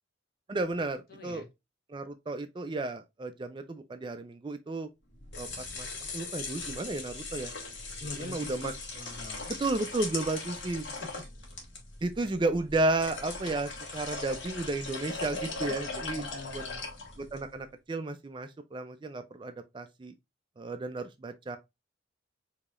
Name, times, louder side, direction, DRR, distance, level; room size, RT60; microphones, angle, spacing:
voice 1, 0.5-1.4 1.9-4.9 5.4-5.9 6.1-7.5 8.2-8.7 9.5-10.8 12.0-16.2 16.5-16.6 17.2-20.1 20.6-21.6, right 2 dB, 25° right, 0.3 m, -33 dB
voice 2, 1.1-1.5 8.0-9.4 10.6-10.7 11.0-11.1 15.6-16.8, left 3 dB, 50° left, 1.3 m, -45 dB
sound 1, 5.1-17.5, left 3 dB, 70° left, 1.5 m, -39 dB
4.9 x 2.8 x 2.4 m
head